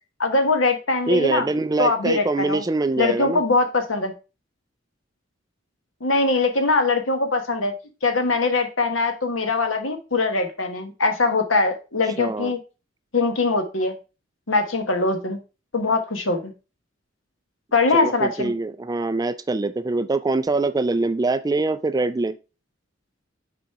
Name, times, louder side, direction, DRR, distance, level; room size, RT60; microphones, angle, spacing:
voice 1, 0.2-1.5 1.8-2.6 3.0-4.1 6.0-7.7 8.0-12.6 13.1-13.9 14.5-15.4 15.7-16.5 17.7-18.5, left 3 dB, 85° left, 1.3 m, -22 dB
voice 2, 1.1-3.4 12.2-12.5 17.9-22.4, right 3 dB, 20° right, 0.4 m, -24 dB
6.3 x 4.1 x 4.6 m
head